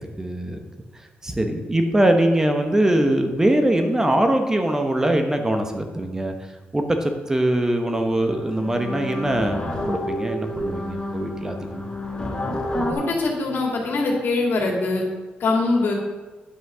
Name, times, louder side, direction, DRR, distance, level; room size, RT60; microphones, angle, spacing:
voice 1, 0.2-0.6 1.2-6.3 6.7-11.8, right 1 dB, 15° right, 5 dB, 1.1 m, -22 dB
sound 1, 7.5-7.6 7.9-12.9, left 1 dB, 25° left, 2.2 m, -29 dB
voice 2, 12.9-15.0 15.4-15.9, left 3 dB, 65° left, 1 dB, 2.5 m, -22 dB
9.7 x 6.1 x 6.2 m, 1.3 s
cardioid pair, 90°, 4 cm